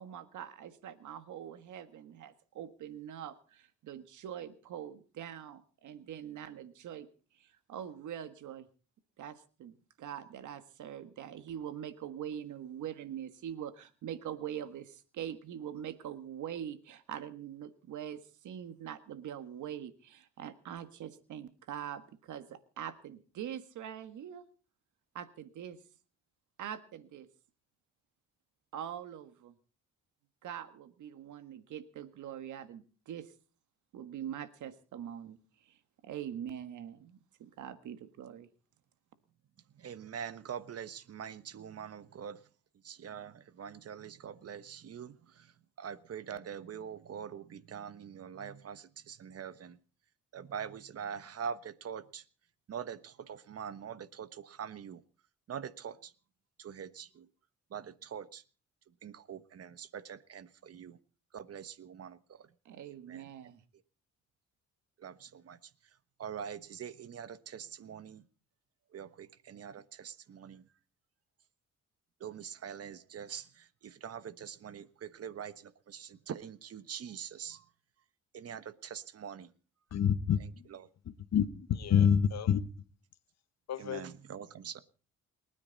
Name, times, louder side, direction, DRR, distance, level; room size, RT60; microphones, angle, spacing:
voice 1, 0.0-7.1 7.4-8.7 9.2-24.5 25.1-25.8 26.6-27.3 28.7-29.5 30.4-33.3 33.9-35.4 35.7-35.8 36.0-38.5 62.7-63.6, right 9 dB, 75° right, 1.7 m, -43 dB
voice 2, 39.8-42.4 42.8-45.5 45.8-49.8 50.3-52.2 52.7-55.0 55.5-56.1 56.6-57.3 57.7-58.4 59.0-61.0 61.3-62.5 63.1-63.3 65.0-65.6 66.2-68.2 68.9-70.6 72.2-77.7 78.3-79.5 80.4-80.9 83.8-84.8, right 8 dB, 50° right, 1.2 m, -44 dB
voice 3, 79.9-80.4 81.3-82.6 83.7-84.0, left 8 dB, 60° left, 1.4 m, -27 dB
29.0 x 9.8 x 4.1 m
cardioid pair, 90°, 30 cm